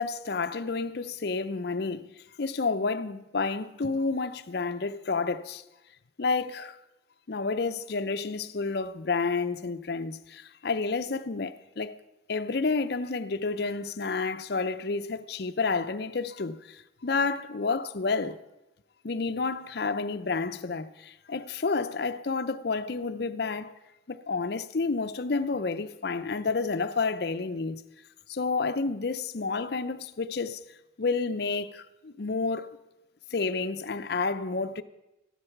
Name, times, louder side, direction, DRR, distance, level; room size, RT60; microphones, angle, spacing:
voice 1, 0.0-2.1 2.4-5.6 6.2-6.8 7.3-12.0 12.3-18.4 19.0-23.7 24.1-27.8 28.3-30.6 31.0-32.7 33.3-34.8, left 4 dB, 55° left, 0.6 m, -30 dB
13.5 x 11.0 x 5.8 m
head